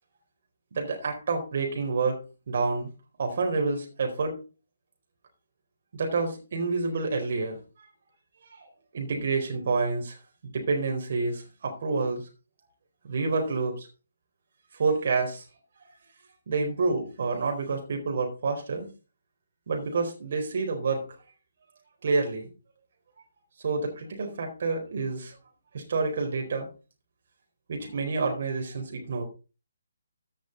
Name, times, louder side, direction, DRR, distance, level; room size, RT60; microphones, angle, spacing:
voice 1, 0.7-2.2 2.5-2.9 3.2-4.4 5.9-7.6 8.4-8.6 8.9-10.2 10.4-12.2 13.0-13.9 14.8-15.4 16.5-18.9 19.7-21.0 22.0-22.5 23.6-25.3 25.7-26.7 27.7-29.2, right 4 dB, 50° right, 2 dB, 4.2 m, -28 dB
15.0 x 6.3 x 4.0 m, 0.33 s
figure-of-eight pair, 140°, 0 cm